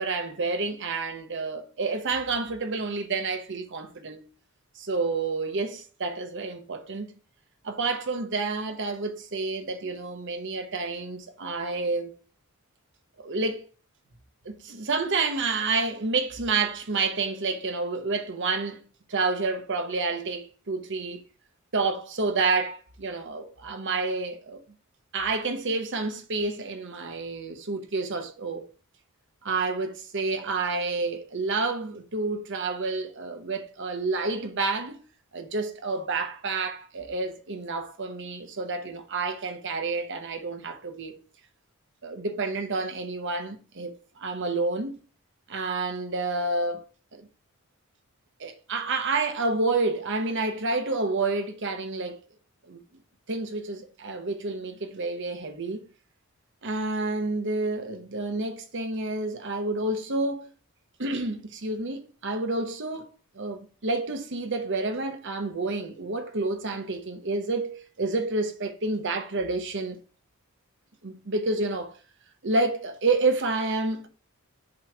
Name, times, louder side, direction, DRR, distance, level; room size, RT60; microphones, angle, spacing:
voice 1, 0.0-4.2 4.8-7.1 7.6-12.1 13.2-13.6 14.4-18.8 19.1-21.2 21.7-24.6 25.1-28.7 29.4-35.0 35.3-41.1 42.0-43.9 44.2-45.0 45.5-46.8 47.1-47.3 48.4-52.2 52.7-52.8 53.3-55.8 56.6-60.5 61.0-63.1 63.3-70.0 71.0-71.9 72.4-74.1, right 3 dB, 55° right, 1.0 m, -29 dB
7.6 x 3.2 x 6.0 m
head